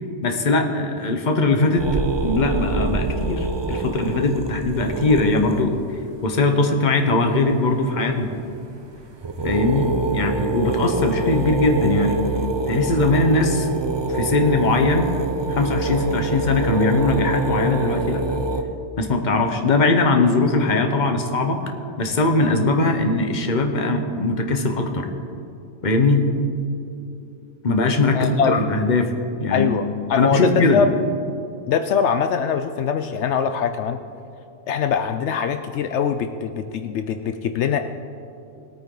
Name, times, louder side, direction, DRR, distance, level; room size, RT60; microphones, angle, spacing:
voice 1, 0.2-5.8 6.2-8.3 9.4-12.2 12.7-13.7 14.1-15.1 15.5-18.2 19.0-21.6 22.0-25.1 25.8-26.2 27.6-29.1 29.4-29.7 30.1-30.8, left 2 dB, 40° left, 4 dB, 1.1 m, -20 dB
sound 1, 1.8-5.7 8.4-8.6 9.0-9.1 9.2-18.6, right 2 dB, 35° right, 0.5 m, -25 dB
voice 2, 28.1-28.6 29.5-30.9 31.7-34.0 34.7-37.8, left 7 dB, 70° left, 8 dB, 0.8 m, -22 dB
20.5 x 8.9 x 3.9 m, 2.6 s
omnidirectional pair, 1.3 m